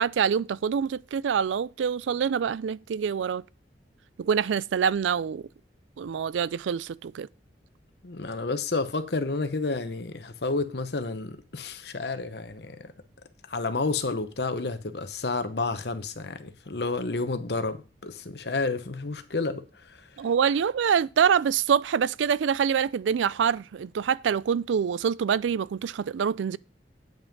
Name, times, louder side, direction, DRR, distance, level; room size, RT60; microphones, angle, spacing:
voice 1, 0.0-3.4 4.2-5.5 6.0-7.3 20.2-26.6, right 7 dB, 85° right, 0.4 m, -25 dB
voice 2, 8.0-12.9 13.5-20.1, left 3 dB, 65° left, 0.9 m, -30 dB
9.1 x 5.8 x 5.2 m
head